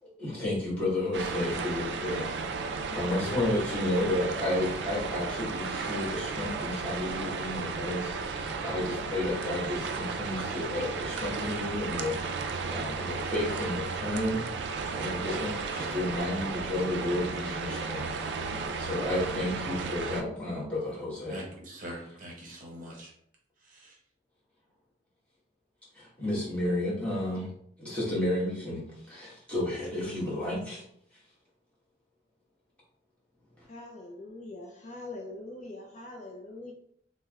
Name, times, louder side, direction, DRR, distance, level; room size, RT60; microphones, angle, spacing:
voice 1, 0.2-14.4 14.9-18.3 18.6-21.4 25.9-27.5 27.8-28.8 29.1-30.8, left 1 dB, 5° left, 1.2 m, -32 dB
sound 1, 1.1-20.2, right 4 dB, 60° right, 0.3 m, -34 dB
voice 2, 21.3-23.1 23.6-24.0, equal, 45° right, 0.8 m, -43 dB
voice 3, 33.7-36.7, left 2 dB, 35° left, 0.4 m, -43 dB
3.3 x 2.1 x 3.4 m
head